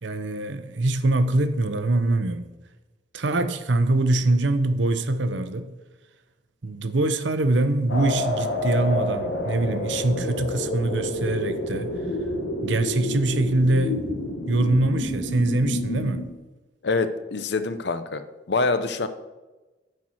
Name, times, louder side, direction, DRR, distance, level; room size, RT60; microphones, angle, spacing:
voice 1, 0.0-2.5 3.1-5.7 6.6-11.9 12.6-14.0 14.5-16.3, right 2 dB, 80° right, 0.7 m, -23 dB
sound 1, 7.9-16.3, left 1 dB, 85° left, 1.2 m, -29 dB
voice 2, 16.8-18.2 18.5-19.1, left 3 dB, 65° left, 0.7 m, -25 dB
9.6 x 4.5 x 6.2 m
head